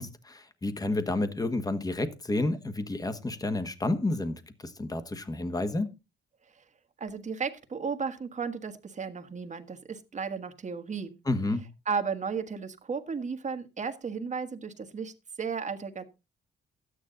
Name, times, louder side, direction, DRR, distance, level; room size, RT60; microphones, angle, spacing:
voice 1, 0.0-5.9 11.2-11.6, left 2 dB, 20° left, 1.5 m, -30 dB
voice 2, 7.0-11.2 11.9-16.0, right 5 dB, 35° right, 1.5 m, -34 dB
12.5 x 9.5 x 3.9 m
cardioid pair, 90°, 20 cm